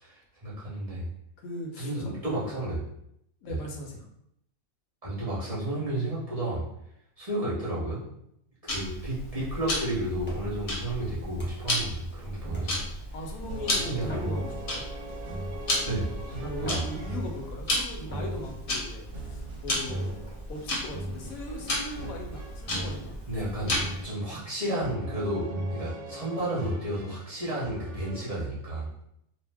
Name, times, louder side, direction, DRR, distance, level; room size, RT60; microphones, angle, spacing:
voice 1, 0.0-1.0 1.8-2.8 3.5-3.6 5.0-6.6 7.2-8.0 8.6-12.8 13.7-14.1 15.8-16.8 23.3-28.9, right 1 dB, 30° right, -9 dB, 0.8 m, -32 dB
voice 2, 1.4-2.1 3.4-4.0 13.1-14.9 16.4-20.2 20.5-23.2, left 1 dB, 75° left, 1 dB, 1.0 m, -39 dB
Tick-tock, 8.7-24.1, left 1 dB, 50° left, 0.8 m, -34 dB
sound 1, 10.2-11.8 12.5-13.1 14.0-15.1 15.9-16.0 16.5-17.6 18.1-18.8 20.3-20.6 21.7-21.9 22.5-22.6 22.9-23.0 23.4-23.5 23.8-24.0 24.4-24.5 24.9-25.0 25.4-25.5 26.4-26.5, equal, 10° left, 0.6 m, -46 dB
sound 2, 12.4-28.3, right 1 dB, 60° right, 0.9 m, -39 dB
2.6 x 2.1 x 3.3 m, 0.76 s
omnidirectional pair, 1.5 m